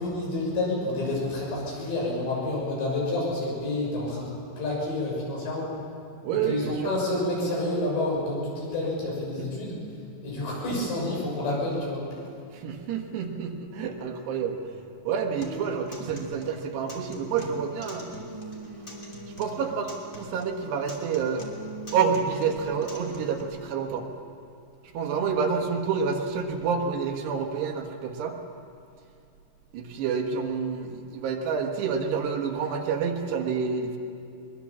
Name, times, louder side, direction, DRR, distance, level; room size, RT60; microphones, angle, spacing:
voice 1, 0.0-5.7 6.4-9.8 10.2-12.0, left 2 dB, 85° left, -4 dB, 8.7 m, -29 dB
voice 2, 6.2-6.9 12.5-14.6 15.1-18.1 19.4-21.5 21.9-24.1 24.9-28.4 29.7-34.0, right 6 dB, 75° right, 3 dB, 3.6 m, -28 dB
Acoustic guitar, 15.4-23.4, equal, 20° left, 2.7 m, -42 dB
22.5 x 22.5 x 7.3 m, 2.5 s
omnidirectional pair, 5.0 m